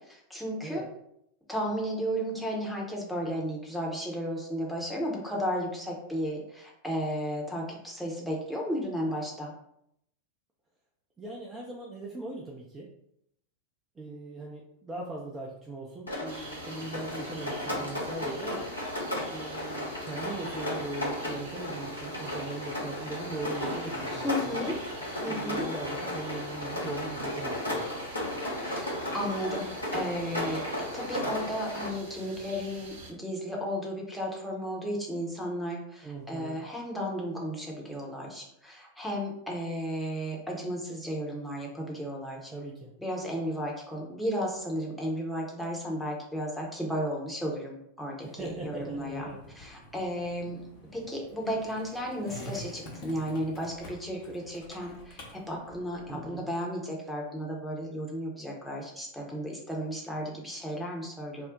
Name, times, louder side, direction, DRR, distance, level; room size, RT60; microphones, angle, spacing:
voice 1, 0.1-0.8 1.5-9.5 24.1-24.8 25.2-25.6 28.6-30.6 30.9-42.5 43.0-50.7 50.9-61.5, equal, ahead, -3 dB, 0.8 m, -34 dB
voice 2, 11.2-12.9 14.0-18.7 19.3-24.7 25.3-27.9 36.0-36.6 42.5-42.9 48.2-49.4 56.1-56.4, right 2 dB, 15° right, -3 dB, 0.4 m, -40 dB
Rain, 16.1-31.9, left 1 dB, 85° left, 0.8 m, -35 dB
sound 1, 16.2-33.1, right 3 dB, 55° right, 0.6 m, -47 dB
Skateboard, 48.4-56.4, left 1 dB, 45° left, 0.8 m, -47 dB
2.5 x 2.0 x 3.8 m, 0.75 s
figure-of-eight pair, 90°, 0 cm